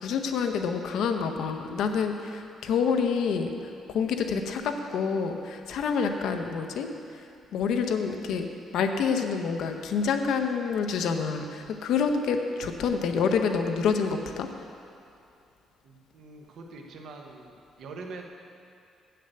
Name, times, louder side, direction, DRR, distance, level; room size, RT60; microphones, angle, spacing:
voice 1, 0.0-3.5 3.9-6.9 7.5-8.5 8.7-14.5, left 6 dB, 75° left, 5 dB, 0.7 m, -27 dB
voice 2, 15.8-18.3, right 3 dB, 65° right, 2 dB, 1.1 m, -44 dB
7.8 x 6.7 x 7.8 m, 2.5 s
cardioid pair, 160°, 0 cm